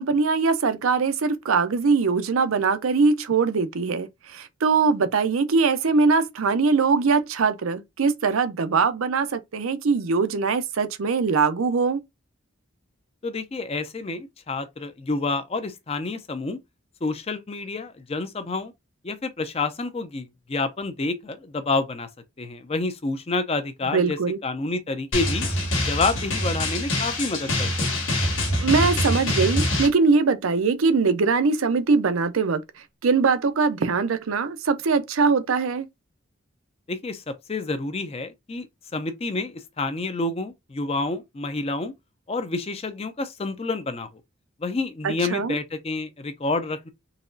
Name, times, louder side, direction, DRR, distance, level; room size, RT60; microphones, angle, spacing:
voice 1, 0.0-12.0 23.9-24.4 28.6-32.6 33.0-35.9 45.0-45.6, right 4 dB, 80° right, 0.5 m, -22 dB
voice 2, 13.2-16.6 17.0-18.7 19.0-22.1 22.4-25.5 25.9-28.0 36.9-38.7 38.9-41.9 42.3-44.1 44.6-46.9, left 3 dB, 30° left, 0.5 m, -28 dB
Drum, 25.1-29.9, left 1 dB, 65° left, 1.4 m, -25 dB
4.0 x 2.9 x 2.6 m
head